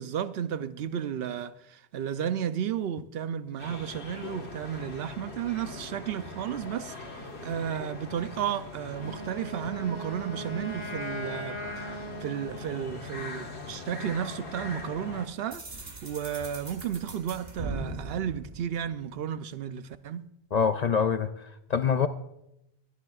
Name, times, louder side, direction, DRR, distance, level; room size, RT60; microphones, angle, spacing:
voice 1, 0.0-15.6 16.0-20.3, right 9 dB, 70° right, 0.8 m, -33 dB
sound 1, 3.6-15.3, left 3 dB, 80° left, 1.8 m, -41 dB
Wind instrument woodwind instrument, 8.9-13.1, right 1 dB, 30° left, 0.9 m, -39 dB
sound 2, 15.5-19.4, right 3 dB, 45° right, 1.4 m, -39 dB
voice 2, 20.5-22.1, left 7 dB, 55° left, 0.5 m, -25 dB
22.5 x 10.5 x 2.4 m
omnidirectional pair, 1.1 m